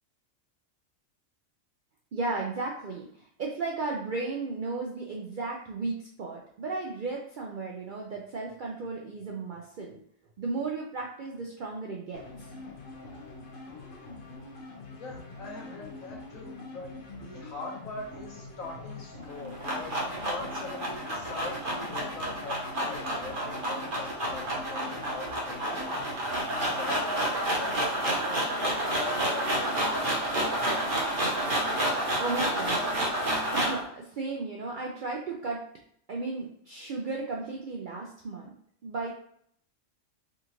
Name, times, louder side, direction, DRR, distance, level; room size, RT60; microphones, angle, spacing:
voice 1, 2.1-10.0 10.4-12.5 32.2-35.6 36.1-38.5 38.8-39.1, right 3 dB, 70° right, -1 dB, 0.4 m, -35 dB
sound 1, 12.1-27.0, left 3 dB, 50° left, 0.8 m, -45 dB
voice 2, 15.0-16.9 17.2-26.0 26.6-30.4 34.7-34.9, left 2 dB, 90° left, -2 dB, 1.4 m, -42 dB
sound 2, 19.2-33.8, right 1 dB, 45° right, 0.9 m, -30 dB
3.7 x 2.4 x 2.9 m, 0.67 s
omnidirectional pair, 1.4 m